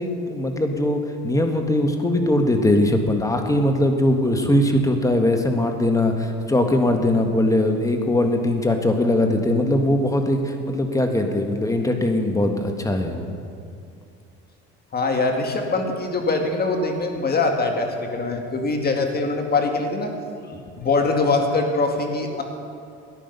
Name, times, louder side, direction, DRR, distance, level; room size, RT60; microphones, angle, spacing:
voice 1, 0.0-13.3, left 1 dB, 10° left, 4 dB, 1.6 m, -21 dB
voice 2, 14.9-20.1 20.5-22.4, left 3 dB, 35° left, 3 dB, 2.1 m, -23 dB
14.0 x 10.0 x 5.5 m, 2.5 s
supercardioid pair, 80°, 29 cm